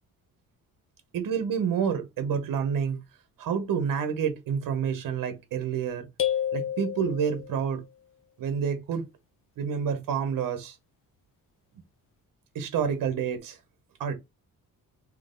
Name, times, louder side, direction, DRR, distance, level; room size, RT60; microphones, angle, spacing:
voice 1, 1.1-3.0 3.4-6.1 6.5-7.8 8.4-9.0 9.6-10.7 12.5-13.6 14.0-14.1, right 7 dB, 75° right, 1.1 m, -28 dB
sound 1, 6.2-7.7, left 10 dB, 40° left, 0.8 m, -30 dB
3.9 x 3.1 x 3.8 m
wide cardioid pair, 175°, 33 cm